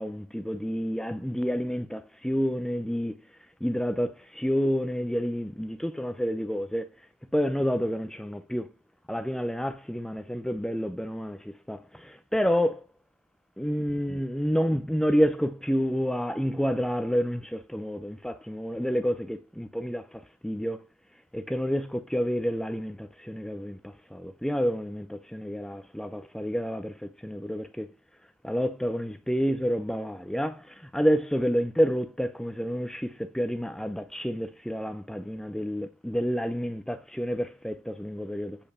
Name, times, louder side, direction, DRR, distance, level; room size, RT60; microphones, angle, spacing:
voice 1, 0.0-3.1 3.6-6.9 7.3-8.7 9.1-12.8 13.6-20.8 21.3-27.9 28.4-38.6, equal, 5° left, 0.5 m, -29 dB
8.7 x 5.5 x 5.4 m
head